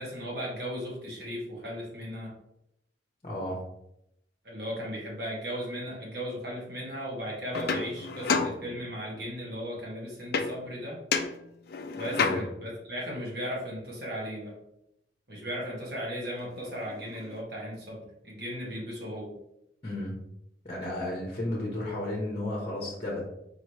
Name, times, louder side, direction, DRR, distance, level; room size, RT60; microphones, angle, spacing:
voice 1, 0.0-2.3 4.4-11.0 11.9-14.6 15.3-19.3, equal, 60° right, -3 dB, 1.6 m, -36 dB
voice 2, 3.2-3.6 12.1-12.4 19.8-20.2 20.6-23.2, left 1 dB, 35° left, -2 dB, 0.9 m, -33 dB
sound 1, 7.5-9.2 10.3-10.8 11.1-12.7 16.0-16.1 16.4-17.4, left 5 dB, 60° left, 0.4 m, -31 dB
4.8 x 3.0 x 3.1 m, 0.80 s
head